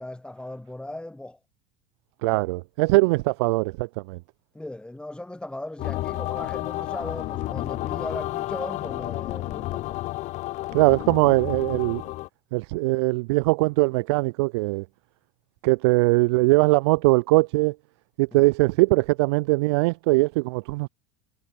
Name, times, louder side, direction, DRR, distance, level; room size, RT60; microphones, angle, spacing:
voice 1, 0.0-1.4 2.3-2.4 4.5-10.0 18.3-18.5, left 1 dB, 5° left, 2.8 m, -37 dB
voice 2, 2.2-4.2 10.7-12.0 12.5-14.8 15.6-17.7 18.2-20.9, right 24 dB, 75° right, 1.2 m, -21 dB
sound 1, 5.8-12.3, left 18 dB, 55° left, 1.2 m, -31 dB
hypercardioid pair, 90°, 14 cm